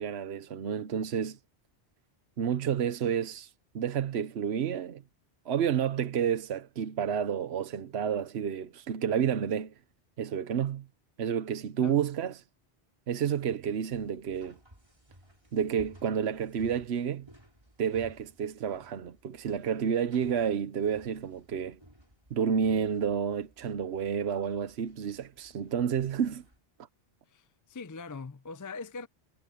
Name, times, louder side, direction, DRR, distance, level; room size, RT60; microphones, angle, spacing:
voice 1, 0.0-1.4 2.4-3.5 3.7-5.0 5.4-9.7 10.2-10.9 11.2-12.4 13.1-14.6 15.5-17.3 17.8-21.8 22.3-26.4, right 8 dB, 75° right, 1.1 m, -30 dB
sound 1, 13.9-26.6, equal, 25° right, 5.9 m, -57 dB
voice 2, 27.3-29.1, left 4 dB, 25° left, 0.4 m, -42 dB
omnidirectional pair, 1.1 m